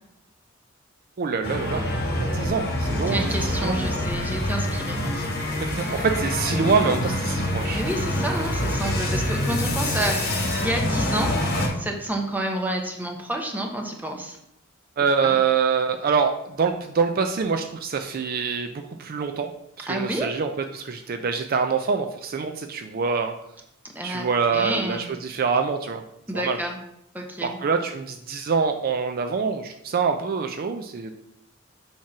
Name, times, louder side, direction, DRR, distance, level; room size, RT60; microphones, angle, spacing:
voice 1, 1.2-3.8 5.6-7.8 15.0-19.5 19.8-23.3 24.0-26.0 26.3-26.6 27.4-31.1, right 5 dB, 45° right, 6 dB, 0.4 m, -25 dB
sound 1, 1.4-11.7, left 1 dB, 50° left, 1.6 m, -26 dB
voice 2, 3.1-5.8 7.7-11.4 11.8-14.4 15.2-15.4 19.9-20.3 23.9-24.3 24.5-25.1 26.3-26.8 27.1-27.6, right 1 dB, 10° right, 1 dB, 1.0 m, -29 dB
7.4 x 2.9 x 5.9 m, 0.79 s
head